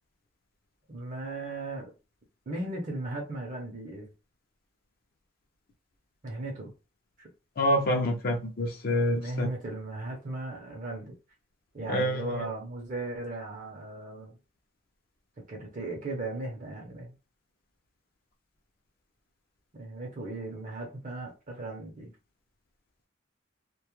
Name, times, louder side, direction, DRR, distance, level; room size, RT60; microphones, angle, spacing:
voice 1, 0.9-1.9 2.5-4.1 6.2-6.7 7.2-7.3 9.2-11.1 11.7-14.4 15.5-17.1 19.7-22.1, right 2 dB, 40° right, 0.5 m, -37 dB
voice 2, 7.6-9.5 11.9-12.5, equal, 50° left, 0.5 m, -27 dB
2.2 x 2.0 x 2.9 m
head